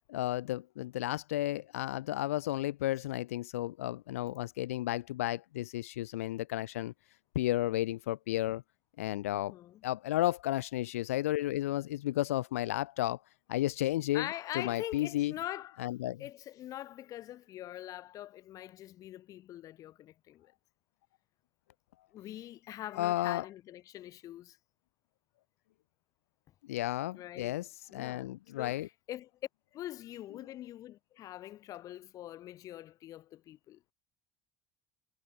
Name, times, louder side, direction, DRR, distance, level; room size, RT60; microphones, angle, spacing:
voice 1, 0.1-6.9 7.4-8.6 9.0-9.5 9.8-13.2 13.5-14.3 14.5-15.3 15.8-16.2 23.0-23.4 26.7-28.9, left 15 dB, 65° left, 2.1 m, -33 dB
voice 2, 9.3-9.8 14.1-15.9 16.2-20.5 22.1-24.6 27.1-27.6 27.9-28.3 28.6-29.3 29.7-33.8, left 13 dB, 45° left, 3.6 m, -43 dB
figure-of-eight pair, 65°, 8 cm